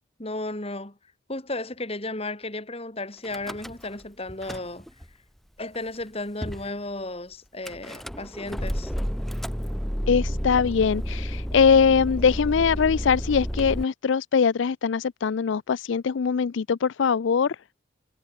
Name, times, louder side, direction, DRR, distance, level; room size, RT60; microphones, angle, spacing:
voice 1, 0.2-1.0 1.3-4.9 5.6-8.9, left 2 dB, 30° left, 2.7 m, -34 dB
Car / Engine starting / Idling, 3.2-4.0 4.3-5.1 5.7-5.8 6.0-6.1 6.4-6.7 7.7-13.8, equal, ahead, 1.2 m, -31 dB
voice 2, 10.1-17.6, left 6 dB, 65° left, 0.4 m, -22 dB
head